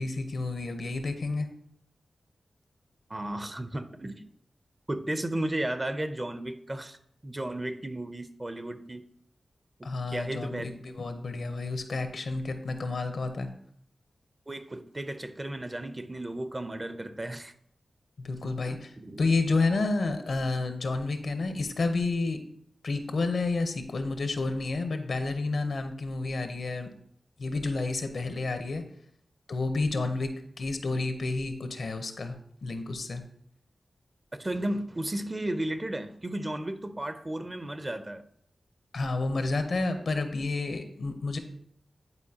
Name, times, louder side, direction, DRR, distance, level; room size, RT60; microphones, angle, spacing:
voice 1, 0.0-1.5 9.8-13.5 18.2-22.4 22.8-26.9 27.4-28.8 29.5-30.3 30.6-32.3 32.6-33.2 38.9-41.4, left 3 dB, 75° left, 7 dB, 0.8 m, -30 dB
voice 2, 3.1-4.2 4.9-7.0 7.2-9.1 9.8-10.7 14.5-17.5 18.4-19.2 34.4-38.2, right 1 dB, 25° right, 10 dB, 0.6 m, -34 dB
9.8 x 4.5 x 2.8 m, 0.67 s
cardioid pair, 65°, 0 cm